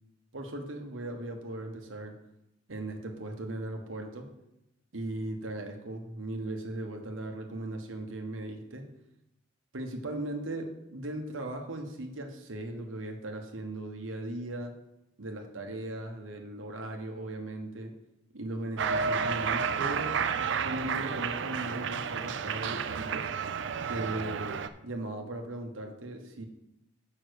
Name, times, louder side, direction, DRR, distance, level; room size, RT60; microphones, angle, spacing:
voice 1, 0.3-2.1 2.7-4.3 4.9-8.9 9.7-14.7 15.2-17.9 18.3-20.2 20.6-23.3 23.9-24.6 24.8-26.5, right 1 dB, 85° right, 3 dB, 1.2 m, -38 dB
Cheering, 18.8-24.7, right 6 dB, 65° right, 0.5 m, -31 dB
6.7 x 5.6 x 6.4 m, 0.87 s
head